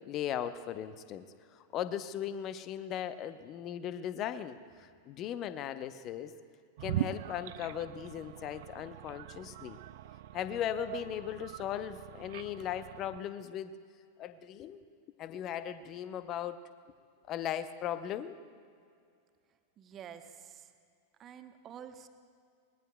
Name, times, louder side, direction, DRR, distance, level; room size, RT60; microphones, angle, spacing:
voice 1, 0.1-1.2 1.7-6.3 6.8-9.8 10.3-13.7 14.2-14.8 15.2-16.6 17.3-18.3, left 10 dB, 35° left, 12 dB, 0.8 m, -38 dB
sound 1, 6.8-13.2, right 14 dB, 55° right, 0.4 m, -41 dB
voice 2, 19.8-20.6 21.2-22.1, right 8 dB, 30° right, 8 dB, 1.0 m, -48 dB
25.0 x 21.0 x 2.3 m, 2.3 s
figure-of-eight pair, 90°, 0 cm